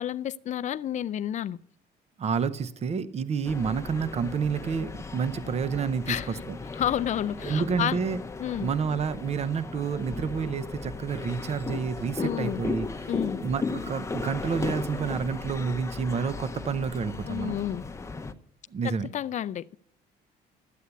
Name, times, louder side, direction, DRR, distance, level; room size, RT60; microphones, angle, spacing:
voice 1, 0.0-1.6 6.1-6.4 6.7-8.0 8.4-8.7 12.2-12.6 13.1-13.4 17.3-17.8 18.8-19.8, left 11 dB, 45° left, 0.5 m, -30 dB
voice 2, 2.2-6.6 7.4-8.2 8.6-12.9 13.4-17.6 18.7-19.1, right 6 dB, 40° right, 0.8 m, -29 dB
sound 1, 3.4-18.3, left 3 dB, 15° left, 0.8 m, -36 dB
12.5 x 8.4 x 8.2 m
cardioid pair, 110°, 17 cm